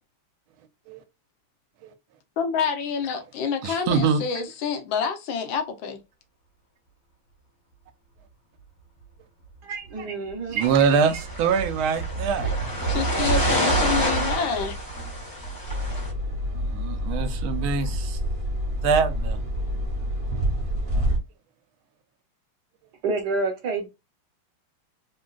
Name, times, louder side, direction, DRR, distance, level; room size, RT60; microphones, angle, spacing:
voice 1, 2.4-6.0 12.9-14.7, left 6 dB, 75° left, 1.4 m, -27 dB
voice 2, 3.6-4.2 10.5-12.5 16.5-18.2 18.8-19.4, right 6 dB, 85° right, 1.4 m, -24 dB
sound 1, 9.0-9.2 9.6-18.4, right 4 dB, 50° left, 1.6 m, -31 dB
voice 3, 9.6-10.7 23.0-23.9, right 3 dB, 65° right, 1.2 m, -28 dB
sound 2, 10.6-16.1, equal, 25° left, 0.4 m, -29 dB
sound 3, 15.7-21.2, equal, 40° right, 0.9 m, -27 dB
3.7 x 2.5 x 2.3 m
omnidirectional pair, 2.2 m